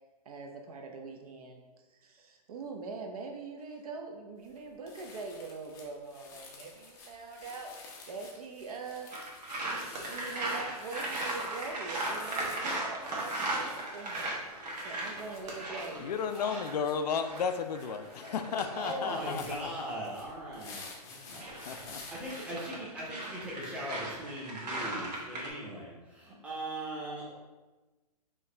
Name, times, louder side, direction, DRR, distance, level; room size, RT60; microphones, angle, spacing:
voice 1, 0.2-1.6 1.9-14.4 14.8-16.1, right 4 dB, 65° right, 3 dB, 0.8 m, -43 dB
sound 1, 4.4-4.6 4.9-22.5, left 4 dB, 15° left, 0.5 m, -51 dB
sound 2, 8.9-20.3, right 2 dB, 45° right, 1.1 m, -53 dB
sound 3, 9.1-19.0 21.1-25.5, right 2 dB, 85° right, 1.4 m, -37 dB
voice 2, 16.0-19.7 21.2-22.0, left 6 dB, 80° left, 9 dB, 0.4 m, -34 dB
voice 3, 18.7-27.4, right 1 dB, 5° right, -5 dB, 0.8 m, -40 dB
4.7 x 2.8 x 3.3 m, 1.2 s
hypercardioid pair, 150°, 20 cm